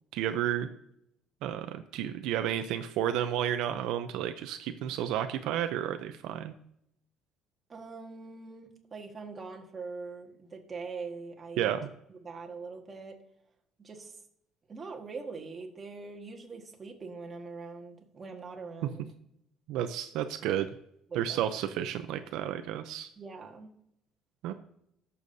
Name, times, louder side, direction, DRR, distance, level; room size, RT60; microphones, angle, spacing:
voice 1, 0.1-0.7 1.4-6.5 11.6-11.9 19.7-20.7 21.1-23.1 24.4-24.5, right 10 dB, 80° right, 8 dB, 0.6 m, -31 dB
voice 2, 7.7-11.7 12.1-13.2 13.8-14.2 14.7-19.0 21.1-21.4 23.2-23.7, right 4 dB, 25° right, 1 dB, 1.5 m, -43 dB
18.5 x 7.0 x 2.7 m, 0.75 s
cardioid pair, 155°, 0 cm